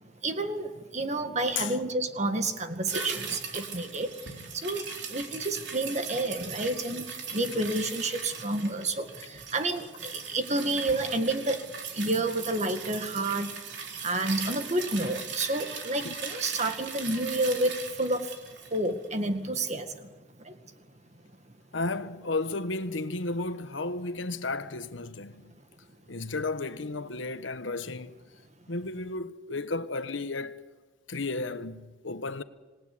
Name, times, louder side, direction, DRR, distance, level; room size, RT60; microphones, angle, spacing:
voice 1, 0.2-11.6 11.9-13.6 14.0-18.3 18.7-20.1 20.4-20.6 26.2-26.3, right 2 dB, 35° right, 2.0 m, -30 dB
sound 1, 2.9-19.4 19.7-19.8, right 6 dB, 65° right, 3.8 m, -39 dB
voice 2, 21.7-25.5 26.1-28.2 28.7-30.6 31.1-32.4, left 3 dB, 80° left, 1.3 m, -33 dB
26.5 x 19.0 x 9.8 m
head